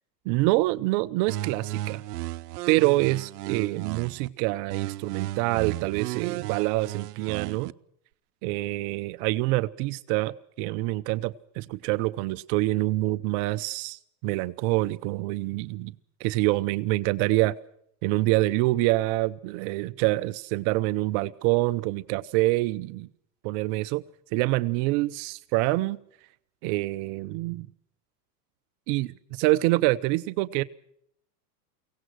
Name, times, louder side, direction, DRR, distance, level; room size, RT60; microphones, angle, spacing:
voice 1, 0.3-2.0 2.7-7.7 8.4-15.9 16.2-17.5 18.0-23.1 23.4-24.0 24.3-26.0 26.6-27.7 28.9-30.6, right 19 dB, 50° right, 0.8 m, -26 dB
sound 1, 1.3-4.3 4.7-7.7, right 16 dB, 80° right, 0.8 m, -34 dB
23.5 x 17.5 x 6.4 m
supercardioid pair, 135°, 46 cm